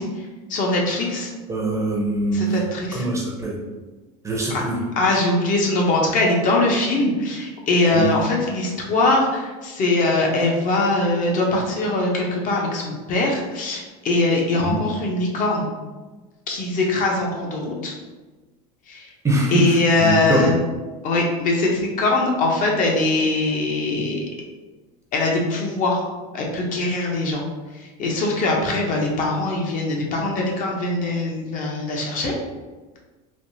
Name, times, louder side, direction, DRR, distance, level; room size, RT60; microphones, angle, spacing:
voice 1, 0.0-1.3 2.3-3.1 4.5-4.6 5.0-15.7 16.5-17.9 18.9-19.1 19.5-20.6 21.0-24.2 25.1-26.0 26.3-27.4 27.8-32.3, left 2 dB, 45° left, -1 dB, 0.7 m, -22 dB
voice 2, 1.5-2.4 2.9-3.6 4.2-4.8 7.9-8.1 14.6-14.8 19.2-19.5 20.0-20.5, right 2 dB, 15° right, -2 dB, 0.6 m, -23 dB
3.4 x 2.3 x 2.6 m, 1.2 s
supercardioid pair, 120°, 19 cm